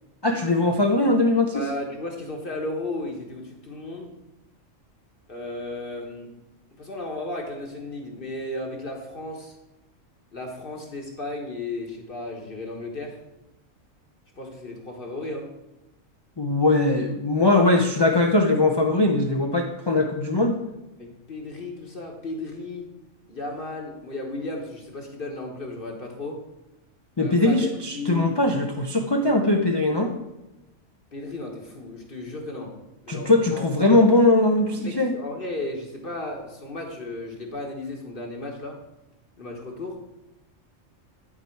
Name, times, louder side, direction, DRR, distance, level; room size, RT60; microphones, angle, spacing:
voice 1, 0.2-1.6 16.4-20.6 27.2-30.1 33.1-35.1, left 2 dB, 30° left, 3 dB, 0.5 m, -20 dB
voice 2, 1.5-4.1 5.3-6.4 6.8-9.6 10.3-13.2 14.4-15.5 21.0-22.9 23.3-26.4 27.2-28.3 31.1-32.7 33.0-33.6 34.8-38.8 39.4-40.0, left 2 dB, 45° left, 1 dB, 1.4 m, -34 dB
11.0 x 4.8 x 4.5 m, 0.96 s
omnidirectional pair, 1.3 m